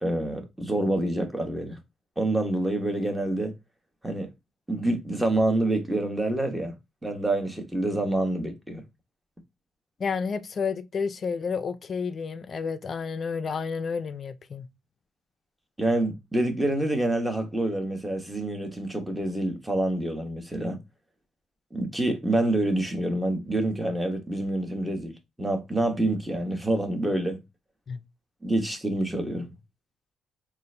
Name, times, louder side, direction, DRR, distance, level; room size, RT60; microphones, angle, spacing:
voice 1, 0.0-1.8 2.2-3.5 4.0-4.3 4.7-6.7 7.0-8.8 15.8-20.8 21.7-27.4 28.4-29.5, right 1 dB, 10° right, 1.0 m, -27 dB
voice 2, 10.0-14.7 27.9-28.0, left 5 dB, 45° left, 0.4 m, -30 dB
3.8 x 2.4 x 3.2 m
cardioid pair, 90°, 0 cm